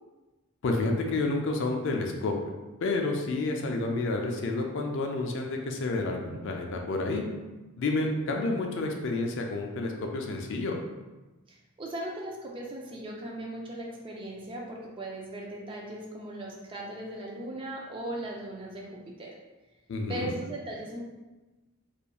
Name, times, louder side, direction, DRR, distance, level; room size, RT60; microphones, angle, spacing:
voice 1, 0.6-2.3 2.8-7.2 7.8-10.8 19.9-20.4, left 2 dB, 55° left, 2 dB, 0.3 m, -29 dB
voice 2, 11.5-19.4 20.0-21.0, right 1 dB, 25° right, -2 dB, 0.4 m, -38 dB
2.9 x 2.4 x 2.2 m, 1.1 s
head